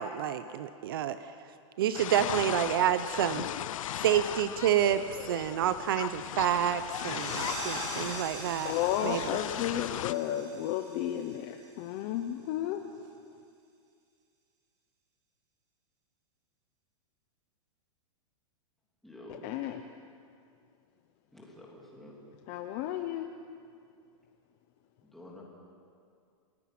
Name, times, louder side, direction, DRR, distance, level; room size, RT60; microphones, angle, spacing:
voice 1, 0.0-1.3 1.8-3.5 4.0-5.0 5.3-8.7 9.0-9.2, right 10 dB, 45° right, 12 dB, 0.6 m, -28 dB
sound 1, 1.9-10.1, left 12 dB, 80° left, 0.5 m, -37 dB
sound 2, 6.6-12.0, right 4 dB, 20° right, 2.3 m, -43 dB
voice 2, 8.6-12.8 19.4-19.8 22.5-23.3, left 11 dB, 25° left, 6 dB, 0.6 m, -33 dB
voice 3, 19.0-19.6 21.3-22.2 25.0-25.4, left 1 dB, ahead, -4 dB, 3.0 m, -49 dB
29.0 x 19.0 x 6.0 m, 2.3 s
supercardioid pair, 180°, 17 cm